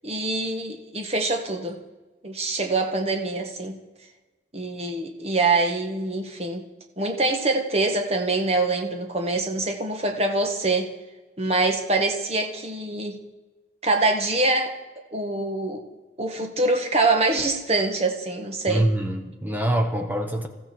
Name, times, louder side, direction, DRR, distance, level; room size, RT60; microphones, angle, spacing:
voice 1, 0.0-1.8 2.2-3.8 4.5-6.6 7.0-10.9 11.4-13.2 13.8-14.7 15.1-15.8 16.2-18.9, right 2 dB, 35° right, 1.5 m, -24 dB
voice 2, 18.7-20.5, right 1 dB, 10° right, 1.0 m, -24 dB
21.5 x 14.0 x 4.5 m
head